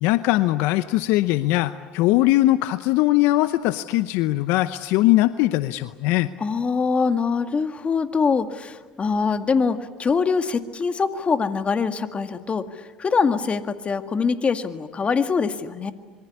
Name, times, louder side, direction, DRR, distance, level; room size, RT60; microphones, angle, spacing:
voice 1, 0.0-6.3, left 17 dB, 65° left, 13 dB, 0.8 m, -20 dB
voice 2, 6.4-15.9, left 5 dB, 30° left, 9 dB, 1.9 m, -23 dB
26.0 x 23.0 x 9.8 m, 1.4 s
hypercardioid pair, 75°, 4 cm